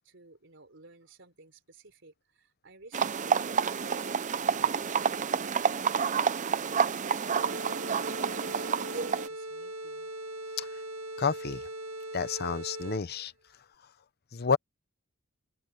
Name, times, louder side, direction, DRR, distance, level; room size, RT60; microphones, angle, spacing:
voice 1, 0.0-6.0 6.5-10.1, right 3 dB, 60° right, 4.1 m, -54 dB
sound 1, 2.9-9.3, right 6 dB, 35° right, 0.6 m, -29 dB
sound 2, 7.3-13.2, right 1 dB, 80° right, 1.5 m, -40 dB
voice 2, 11.2-11.7 12.1-13.3 14.3-14.6, left 5 dB, 50° left, 0.7 m, -30 dB
open air
head